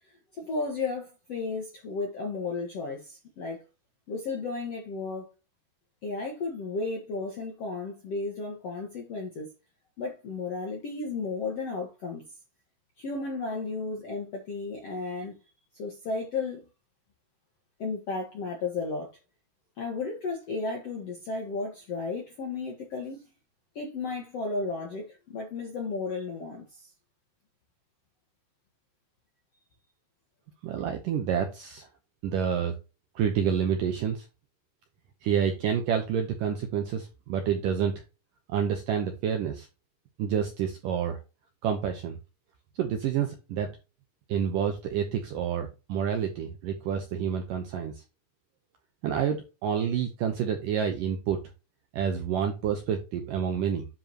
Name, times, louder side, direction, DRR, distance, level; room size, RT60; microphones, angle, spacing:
voice 1, 0.1-3.6 4.1-5.3 6.0-9.5 10.0-12.2 13.0-15.3 15.8-16.7 17.8-19.1 19.8-23.3 23.7-26.9, left 3 dB, 65° left, 1.6 m, -34 dB
voice 2, 30.6-31.9 32.2-32.8 33.2-34.3 35.2-37.9 38.5-39.7 40.2-41.2 41.6-42.2 42.8-43.7 44.3-47.9 49.0-51.4 51.9-53.9, right 8 dB, 80° right, 1.9 m, -28 dB
10.0 x 5.0 x 2.9 m
omnidirectional pair, 5.1 m